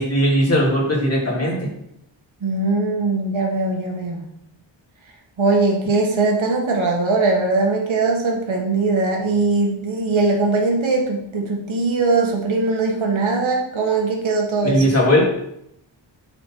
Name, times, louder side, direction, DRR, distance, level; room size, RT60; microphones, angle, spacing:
voice 1, 0.0-1.7 14.6-15.2, equal, 30° left, -4 dB, 3.0 m, -18 dB
voice 2, 2.4-4.2 5.4-14.8, right 3 dB, 75° right, 0 dB, 1.6 m, -20 dB
9.1 x 4.2 x 4.6 m, 0.76 s
wide cardioid pair, 95°, 47 cm